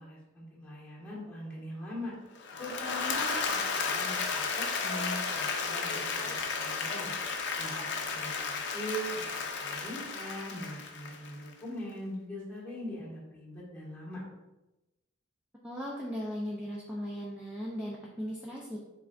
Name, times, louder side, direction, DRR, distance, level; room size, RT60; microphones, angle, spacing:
voice 1, 0.0-2.1 2.6-7.1 7.6-9.2 9.6-14.2, equal, 10° left, -7 dB, 1.6 m, -41 dB
Applause / Crowd, 2.4-11.5, left 4 dB, 60° left, 0.6 m, -33 dB
sound 1, 5.2-5.4 6.2-6.7 7.4-7.9 8.8-9.0, right 1 dB, 40° right, 1.4 m, -51 dB
voice 2, 15.6-18.8, equal, 5° right, -4 dB, 0.5 m, -37 dB
5.4 x 3.8 x 2.5 m, 0.99 s
head